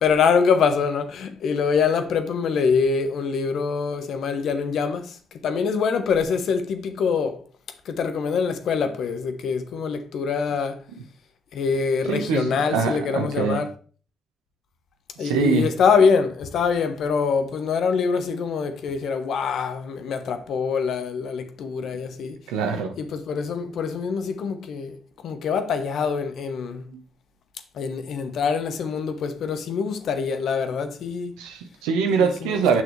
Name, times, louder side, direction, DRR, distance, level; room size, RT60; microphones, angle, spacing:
voice 1, 0.0-7.4 7.8-10.8 11.5-13.7 15.2-22.4 23.0-25.0 25.2-26.8 27.7-31.4 32.2-32.8, left 5 dB, 70° left, 1.0 m, -24 dB
voice 2, 12.1-13.6 15.2-15.7 22.5-22.9 31.4-32.8, right 5 dB, 90° right, 1.1 m, -23 dB
7.4 x 6.3 x 3.2 m
supercardioid pair, 55°, 0 cm